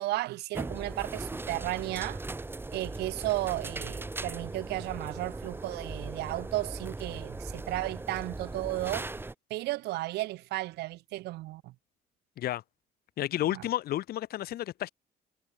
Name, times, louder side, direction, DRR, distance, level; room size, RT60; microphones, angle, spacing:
voice 1, 0.0-2.2 2.7-9.1 9.5-11.7 13.5-13.6, right 18 dB, 80° right, 1.2 m, -34 dB
sound 1, 0.5-9.3, right 2 dB, 15° right, 1.6 m, -39 dB
voice 2, 13.2-14.9, left 13 dB, 65° left, 1.5 m, -31 dB
cardioid pair, 110°, 17 cm